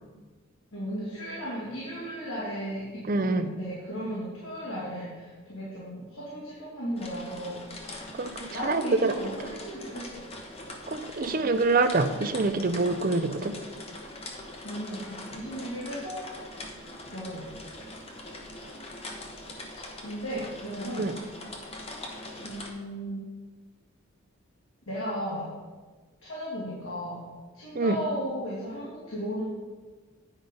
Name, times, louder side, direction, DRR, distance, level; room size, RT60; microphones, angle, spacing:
voice 1, 0.7-7.6 8.5-10.2 14.6-16.2 17.1-17.5 20.0-21.1 22.4-23.3 24.9-25.5 26.2-27.2 27.5-29.4, equal, 75° left, -8 dB, 2.5 m, -35 dB
voice 2, 3.1-3.5 8.1-9.1 10.9-13.5 21.0-21.1 27.8-28.0, right 3 dB, 40° right, 10 dB, 0.5 m, -25 dB
sound 1, 7.0-22.7, left 1 dB, 30° left, 1.0 m, -42 dB
9.6 x 5.3 x 5.2 m, 1.4 s
head